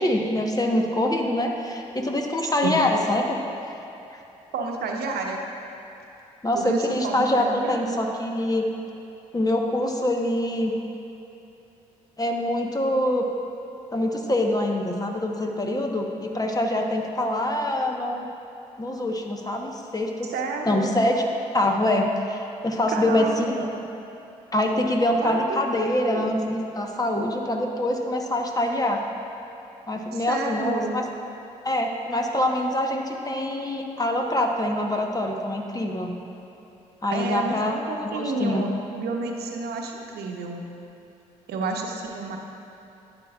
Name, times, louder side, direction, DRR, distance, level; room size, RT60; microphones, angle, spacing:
voice 1, 0.0-3.4 6.4-8.7 9.3-10.8 12.2-13.2 13.9-18.3 18.8-20.3 20.7-21.3 21.5-23.7 24.5-29.0 29.9-31.0 31.6-36.1 37.0-38.7, left 1 dB, 20° left, 2 dB, 1.1 m, -25 dB
voice 2, 4.5-5.4 6.5-8.0 20.3-21.0 22.9-23.7 25.2-26.3 30.1-31.0 37.1-40.6 41.5-42.4, right 3 dB, 65° right, 2 dB, 0.9 m, -30 dB
11.5 x 8.8 x 2.4 m, 2.9 s
hypercardioid pair, 45°, 17 cm